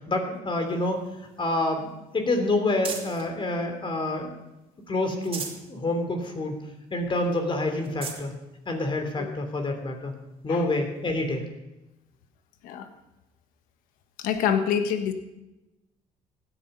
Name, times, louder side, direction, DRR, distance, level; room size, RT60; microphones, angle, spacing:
voice 1, 0.1-1.0 1.4-4.4 4.9-5.4 5.7-6.6 6.9-8.3 8.7-10.1 10.4-11.4, left 2 dB, 35° left, 5 dB, 3.0 m, -27 dB
sound 1, 0.6-3.3 3.8-4.6 5.0-5.7 6.1-6.2 6.6-6.7 7.3-7.4 7.8-8.3 9.1-9.2 10.9-11.0, right 5 dB, 40° right, 2.8 m, -40 dB
voice 2, 14.2-15.1, left 8 dB, 85° left, 8 dB, 1.3 m, -26 dB
16.5 x 10.0 x 5.4 m, 0.98 s
supercardioid pair, 80°, 14 cm